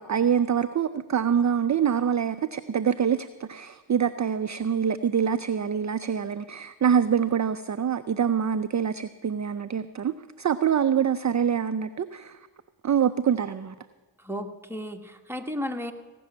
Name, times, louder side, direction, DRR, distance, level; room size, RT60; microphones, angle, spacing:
voice 1, 0.0-12.4 12.8-13.7, right 8 dB, 35° right, 11 dB, 0.5 m, -25 dB
voice 2, 14.2-15.9, equal, 5° right, 4 dB, 1.3 m, -34 dB
16.5 x 6.2 x 9.2 m, 1.3 s
cardioid pair, 40°, 48 cm